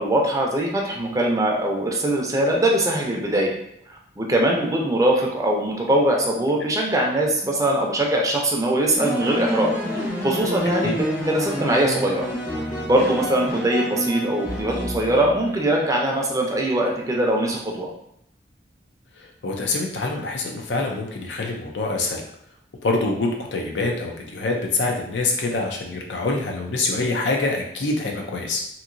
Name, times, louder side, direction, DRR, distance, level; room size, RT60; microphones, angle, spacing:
voice 1, 0.0-3.6 4.2-9.7 10.2-12.3 12.9-17.9, right 1 dB, 20° right, 0 dB, 0.5 m, -22 dB
sound 1, 9.0-15.6, equal, 50° left, 1.1 m, -28 dB
voice 2, 19.4-22.2 22.8-28.6, left 3 dB, 85° left, 1 dB, 0.6 m, -25 dB
2.9 x 2.7 x 2.5 m, 0.72 s
head